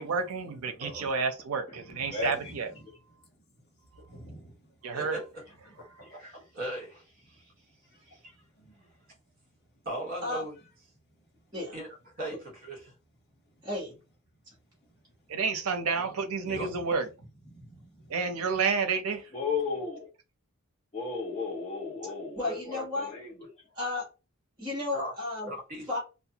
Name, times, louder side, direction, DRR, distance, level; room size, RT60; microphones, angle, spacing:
voice 1, 0.0-2.7 4.8-5.2 15.3-17.1 18.1-19.2, right 5 dB, 80° right, 0.5 m, -30 dB
voice 2, 0.8-1.1 1.8-2.9 4.1-4.5 5.7-6.1 8.6-8.8 16.4-16.9 17.4-18.2, equal, 50° left, 1.1 m, -48 dB
voice 3, 2.1-2.5 19.3-20.1 20.9-23.5, left 4 dB, 25° left, 0.6 m, -34 dB
voice 4, 4.9-5.4 6.0-7.5 8.0-8.3 9.8-10.5 11.7-11.9 12.2-12.9 16.5-16.8 24.9-25.1 25.4-26.0, right 1 dB, 45° right, 1.4 m, -38 dB
voice 5, 13.6-13.9 22.3-23.1 23.7-24.1 24.6-25.5 25.9-26.0, left 2 dB, 20° right, 1.1 m, -33 dB
2.5 x 2.2 x 2.8 m
head